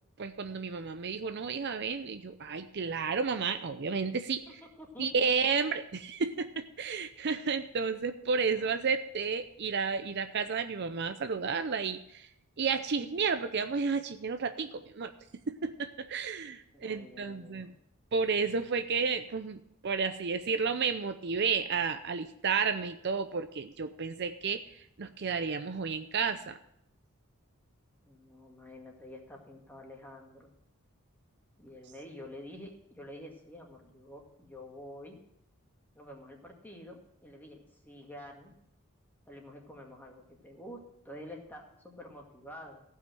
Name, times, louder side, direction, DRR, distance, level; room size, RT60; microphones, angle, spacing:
voice 1, 0.2-4.6 5.0-12.3 12.6-15.1 15.5-17.7 18.1-26.6, right 5 dB, 50° right, 9 dB, 0.6 m, -32 dB
voice 2, 4.8-5.3 8.5-8.8 16.7-17.7 28.1-30.5 31.6-35.2 35.9-38.6 39.3-42.8, left 1 dB, 10° left, 0 dB, 2.0 m, -48 dB
15.5 x 5.7 x 7.6 m, 0.75 s
head